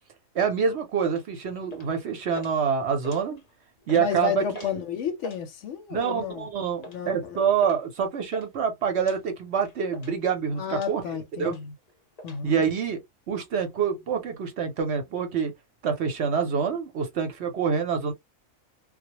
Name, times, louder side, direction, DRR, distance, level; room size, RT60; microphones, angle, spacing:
voice 1, 0.3-3.4 3.9-4.7 5.9-11.6 12.4-13.0 13.3-15.5 15.8-18.1, right 6 dB, 60° right, 0.8 m, -26 dB
sound 1, 1.0-1.3 1.7-2.0 2.3-2.5 2.9-3.5 3.8-4.0 4.5-4.8 5.1-5.4 6.0-6.2 6.8-7.0 7.6-8.5 9.0-9.2 9.6-10.2 10.7-11.0 11.4-11.6 11.9-12.4, right 1 dB, 50° left, 0.5 m, -43 dB
voice 2, 4.0-6.5 6.9-7.5 10.6-11.7 12.2-12.6, left 8 dB, 70° left, 0.8 m, -32 dB
2.2 x 2.1 x 2.8 m
omnidirectional pair, 1.4 m